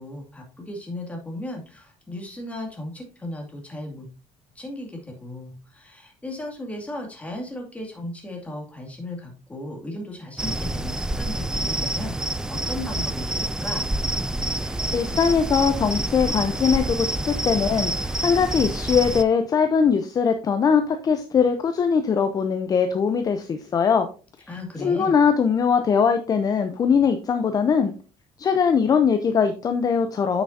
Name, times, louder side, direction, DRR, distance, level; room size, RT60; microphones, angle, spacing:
voice 1, 0.0-4.1 4.6-13.9 24.5-25.1, left 1 dB, 10° left, 1 dB, 2.3 m, -36 dB
sound 1, 10.4-19.2, right 1 dB, 5° right, 0.4 m, -27 dB
voice 2, 14.6-24.1 24.8-27.9 28.4-30.4, left 6 dB, 35° left, 8 dB, 0.7 m, -21 dB
9.2 x 5.9 x 2.7 m, 0.34 s
cardioid pair, 130°, 12 cm